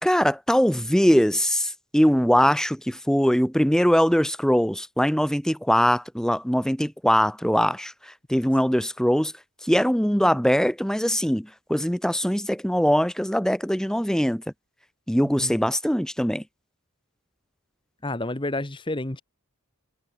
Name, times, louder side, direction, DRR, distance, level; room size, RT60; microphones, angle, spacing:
voice 1, 0.0-9.3 9.6-14.4 15.1-16.4, equal, 5° left, 1.4 m, -22 dB
voice 2, 15.2-15.5 18.0-19.2, left 2 dB, 20° left, 1.2 m, -30 dB
head